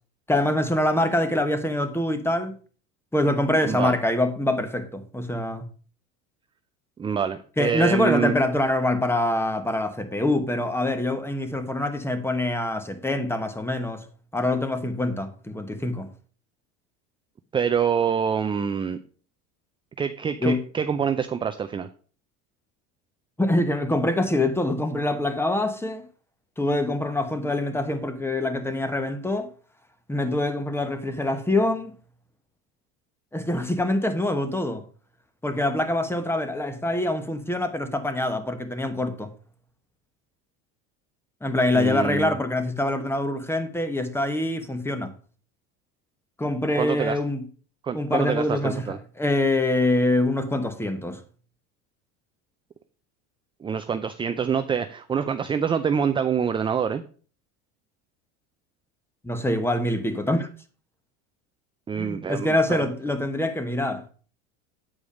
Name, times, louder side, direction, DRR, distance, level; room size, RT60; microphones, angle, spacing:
voice 1, 0.3-2.5 3.1-5.7 7.6-14.0 14.3-16.1 20.4-20.6 23.4-26.1 26.6-29.5 30.1-31.9 33.3-34.8 35.4-39.3 41.4-45.1 46.4-47.4 47.9-51.2 59.2-60.5 62.0-64.0, left 1 dB, 5° left, 1.1 m, -25 dB
voice 2, 3.6-3.9 7.0-8.4 17.5-19.0 20.0-21.9 41.7-42.4 46.8-47.2 47.8-49.0 53.6-57.0 61.9-62.9, right 7 dB, 15° right, 0.4 m, -26 dB
8.7 x 4.8 x 5.2 m
supercardioid pair, 110°, 35 cm